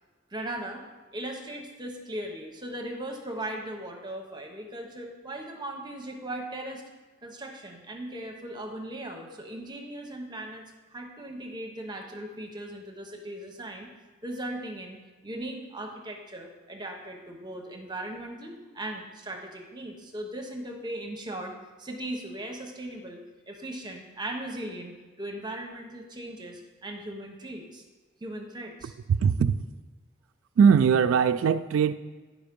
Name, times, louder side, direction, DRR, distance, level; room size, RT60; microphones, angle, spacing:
voice 1, 0.3-0.8 1.1-6.8 7.2-10.6 10.9-13.9 14.2-15.0 15.2-21.5 21.8-23.2 23.5-27.8 28.2-28.9, right 1 dB, 20° right, 2 dB, 0.9 m, -38 dB
voice 2, 29.1-29.6 30.6-31.9, right 6 dB, 80° right, 9 dB, 0.3 m, -20 dB
9.7 x 5.0 x 5.2 m, 1.3 s
head